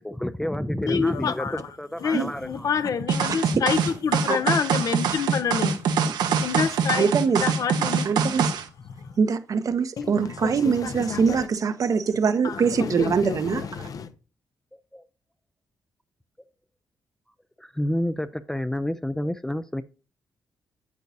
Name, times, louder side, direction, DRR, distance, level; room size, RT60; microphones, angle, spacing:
voice 1, 0.0-2.7 3.5-3.6 11.9-12.0 14.9-15.0 17.6-19.8, left 1 dB, 5° left, 0.4 m, -29 dB
voice 2, 0.9-1.7 2.0-5.8 6.4-8.5 9.0-9.1 10.0-11.5 12.4-14.1, left 6 dB, 60° left, 0.7 m, -28 dB
sound 1, 3.1-8.6, right 6 dB, 90° right, 0.8 m, -24 dB
voice 3, 6.9-7.4 8.0-8.5 9.2-13.9, right 5 dB, 55° right, 0.8 m, -23 dB
8.3 x 8.2 x 2.7 m
cardioid pair, 85°, 7 cm